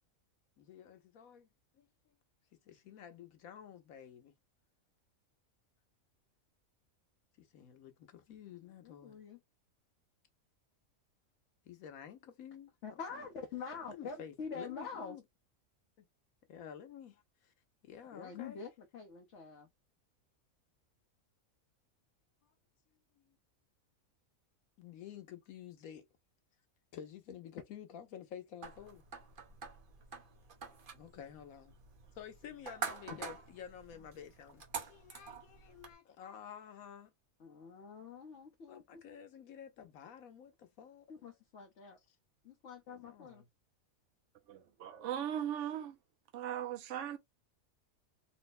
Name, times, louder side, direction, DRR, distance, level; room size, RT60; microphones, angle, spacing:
voice 1, 0.6-1.5 1.7-1.9 2.6-4.3 7.4-9.2 11.6-13.2 13.9-15.2 16.5-17.5 17.8-18.6 22.4-22.5 23.2-23.4 24.8-26.1 26.9-29.0 30.9-31.7 32.1-37.1 38.7-41.1 43.1-43.5, left 8 dB, 90° left, 1.3 m, -51 dB
voice 2, 8.8-9.4 12.8-15.2 18.1-19.7 34.0-34.1 37.4-39.0 41.1-42.0 42.4-43.4, left 5 dB, 60° left, 1.1 m, -46 dB
sound 1, 28.6-35.9, right 5 dB, 45° right, 0.9 m, -46 dB
voice 3, 44.5-46.0 46.3-47.2, right 10 dB, 65° right, 0.9 m, -38 dB
3.9 x 2.1 x 4.1 m
omnidirectional pair, 1.4 m